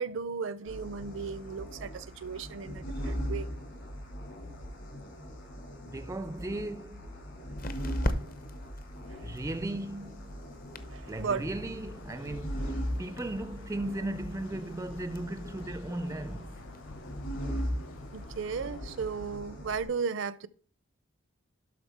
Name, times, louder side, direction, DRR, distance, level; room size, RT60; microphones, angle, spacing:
voice 1, 0.0-3.5 9.1-9.3 10.9-11.5 18.1-20.5, right 5 dB, 65° right, 0.5 m, -35 dB
sound 1, 0.7-19.9, equal, 65° left, 4.8 m, -39 dB
voice 2, 5.8-7.4 9.2-10.4 11.1-16.7, right 1 dB, 15° right, 0.4 m, -37 dB
sound 2, 6.3-18.7, left 1 dB, 45° left, 0.8 m, -44 dB
sound 3, 11.1-19.4, left 3 dB, 80° left, 0.6 m, -51 dB
12.0 x 4.3 x 4.3 m
head